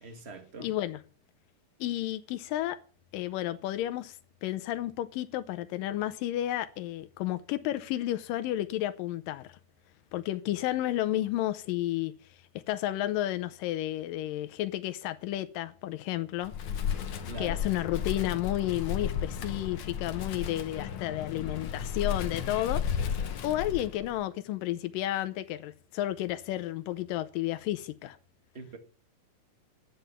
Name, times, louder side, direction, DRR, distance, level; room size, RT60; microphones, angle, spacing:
voice 1, 0.0-0.7 17.3-17.6 28.5-28.8, right 3 dB, 30° right, 1.3 m, -43 dB
voice 2, 0.6-1.0 1.8-2.8 3.1-9.6 10.1-16.5 17.4-28.2, left 14 dB, 90° left, 2.4 m, -32 dB
Wind, 16.4-24.2, left 8 dB, 60° left, 1.5 m, -34 dB
12.0 x 9.0 x 7.0 m
omnidirectional pair, 3.8 m